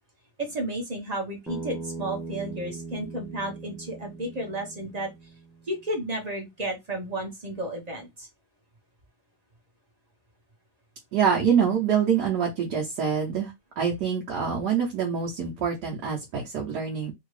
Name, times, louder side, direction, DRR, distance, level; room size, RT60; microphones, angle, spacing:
voice 1, 0.4-5.1 5.7-8.3, right 1 dB, 30° right, 0.8 m, -32 dB
Bass guitar, 1.5-5.7, right 3 dB, ahead, 0.7 m, -39 dB
voice 2, 11.1-13.5 13.8-17.1, right 7 dB, 75° right, 1.4 m, -25 dB
2.9 x 2.8 x 3.1 m
omnidirectional pair, 1.8 m